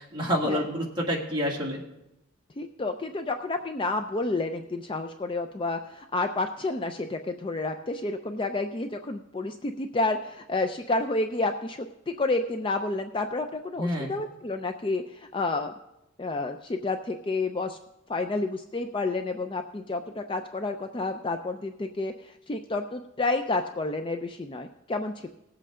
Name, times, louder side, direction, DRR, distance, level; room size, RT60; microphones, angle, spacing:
voice 1, 0.0-1.8 13.8-14.1, equal, 20° right, -3 dB, 2.1 m, -28 dB
voice 2, 2.6-11.9 12.2-15.7 16.2-17.8 18.1-25.3, left 2 dB, 25° left, 6 dB, 0.4 m, -30 dB
18.5 x 7.7 x 3.7 m, 0.87 s
head